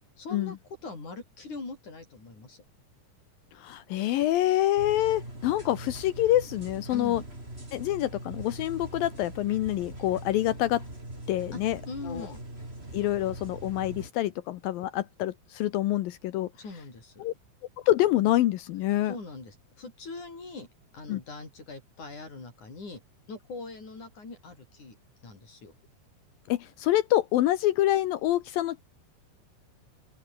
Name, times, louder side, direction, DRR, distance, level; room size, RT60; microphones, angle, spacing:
voice 1, 0.2-0.6 0.8-2.6 6.9-7.3 11.5-11.6 11.9-12.4 16.6-17.3 19.1-20.7 20.9-23.0 23.3-25.0 25.2-25.7, left 3 dB, 50° left, 9.4 m, -41 dB
voice 2, 3.5-7.2 7.7-10.8 11.3-11.8 12.1-12.3 12.9-16.5 17.2-17.3 17.8-19.2 21.1-21.2 26.5-28.8, left 14 dB, 75° left, 2.6 m, -26 dB
sound 1, 4.8-14.1, right 1 dB, 15° right, 7.3 m, -42 dB
open air
omnidirectional pair, 4.4 m